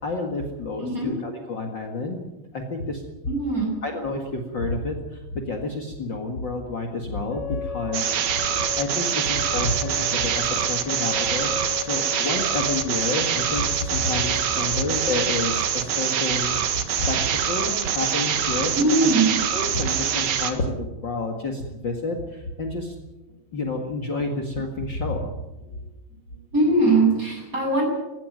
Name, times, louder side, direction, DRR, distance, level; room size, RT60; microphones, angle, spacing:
voice 1, 0.0-2.2 2.5-3.0 3.8-8.4 8.7-18.7 19.0-19.1 19.5-22.9 23.5-25.3, left 2 dB, 60° left, 2 dB, 1.2 m, -29 dB
voice 2, 0.8-1.2 3.3-3.7 18.5-19.3 26.3-27.8, right 2 dB, 15° right, 1 dB, 7.8 m, -21 dB
sound 1, 7.3-16.2, left 6 dB, 30° left, 2.2 m, -37 dB
sound 2, 7.9-20.5, right 8 dB, 60° right, 2.1 m, -25 dB
20.0 x 16.5 x 9.2 m, 1.0 s
omnidirectional pair, 5.2 m